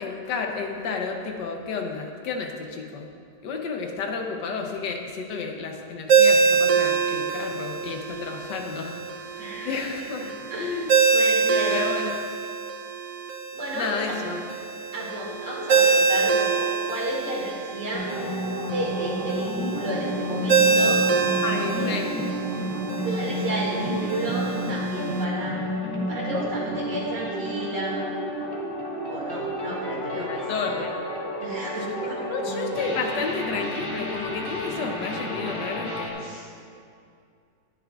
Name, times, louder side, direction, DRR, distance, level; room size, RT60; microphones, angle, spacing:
voice 1, 0.0-3.1 3.4-11.0 11.7-12.3 13.7-14.4 21.4-22.2 30.1-31.0 31.9-36.4, left 5 dB, 85° left, 3 dB, 1.6 m, -31 dB
Ringtone, 6.1-25.2, right 5 dB, 60° right, 0.9 m, -25 dB
voice 2, 9.4-9.9 10.2-10.7 11.1-11.7 13.5-14.2 14.9-18.1 18.6-21.0 21.7-21.9 23.0-25.6 26.1-28.0 29.1-30.5 31.4-32.2 36.2-36.5, right 1 dB, 80° right, -5 dB, 2.9 m, -32 dB
sound 1, 17.9-36.1, equal, 15° left, 1.3 m, -31 dB
20.5 x 7.0 x 2.4 m, 2.3 s
omnidirectional pair, 1.8 m